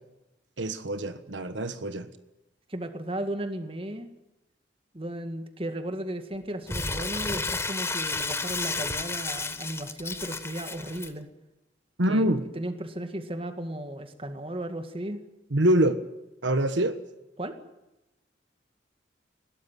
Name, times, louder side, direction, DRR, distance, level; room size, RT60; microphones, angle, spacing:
voice 1, 0.6-2.1 12.0-12.4 15.5-16.0 16.4-17.0, right 1 dB, 75° right, 11 dB, 1.4 m, -24 dB
voice 2, 2.7-4.1 4.9-11.3 12.1-15.2 17.4-17.6, right 1 dB, 30° right, 8 dB, 2.1 m, -35 dB
Crumpling crinkling, 6.7-11.1, left 3 dB, 15° left, 1.1 m, -32 dB
21.0 x 17.5 x 9.4 m, 0.96 s
head